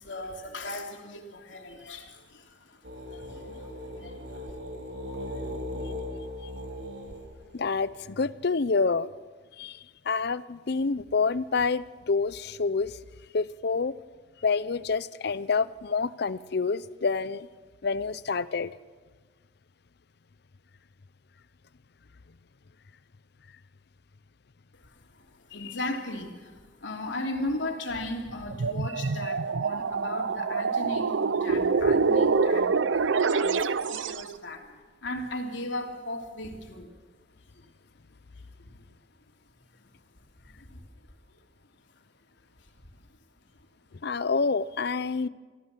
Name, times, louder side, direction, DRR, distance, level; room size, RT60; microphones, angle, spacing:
voice 1, 0.0-4.6 24.7-36.9 37.3-37.7 38.6-38.9 39.7-40.0 40.4-41.4 42.6-42.7 43.0-43.1, left 1 dB, 85° left, 2 dB, 3.0 m, -38 dB
sound 1, 2.8-7.9, left 1 dB, 65° right, 3.7 m, -38 dB
voice 2, 7.5-9.1 9.6-9.8 10.1-12.9 13.3-13.9 14.4-17.5 17.8-18.7 25.6-25.7 44.0-45.3, left 4 dB, 60° left, 17 dB, 0.6 m, -27 dB
sound 2, 28.5-34.3, right 4 dB, 90° right, 0.6 m, -25 dB
24.5 x 15.0 x 7.5 m, 1.4 s
head